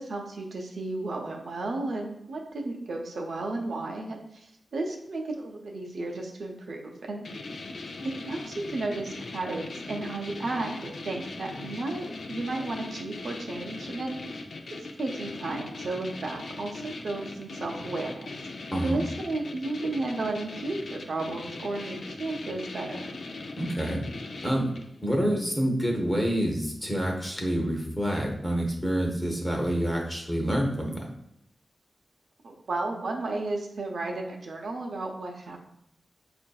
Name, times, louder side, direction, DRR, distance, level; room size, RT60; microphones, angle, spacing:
voice 1, 0.0-7.2 8.0-14.4 15.0-18.3 18.8-23.1 32.4-35.6, right 2 dB, 80° right, 1 dB, 0.6 m, -33 dB
sound 1, 7.2-25.0, left 3 dB, 80° left, 0.4 m, -40 dB
voice 2, 18.7-19.0 23.6-24.0 24.4-24.7 25.0-31.0, equal, 10° left, 0 dB, 0.7 m, -27 dB
5.5 x 2.5 x 2.3 m, 0.74 s
wide cardioid pair, 145°, 0 cm